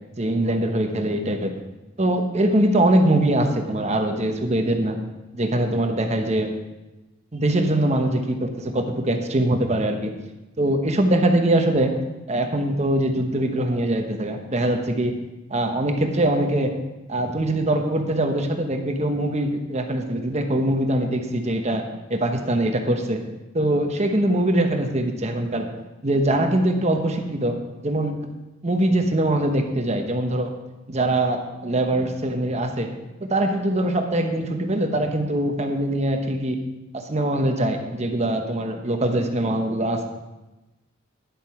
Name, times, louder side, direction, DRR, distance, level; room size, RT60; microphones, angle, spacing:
voice 1, 0.2-1.5 2.0-5.0 5.3-6.5 7.3-10.1 10.6-11.9 12.3-15.1 15.5-16.7 17.1-21.8 22.1-23.2 23.5-25.7 26.0-27.6 27.8-28.2 28.6-30.5 30.9-32.9 33.2-36.6 36.9-40.1, right 1 dB, 30° right, 5 dB, 1.0 m, -22 dB
10.5 x 7.4 x 4.7 m, 1.1 s
head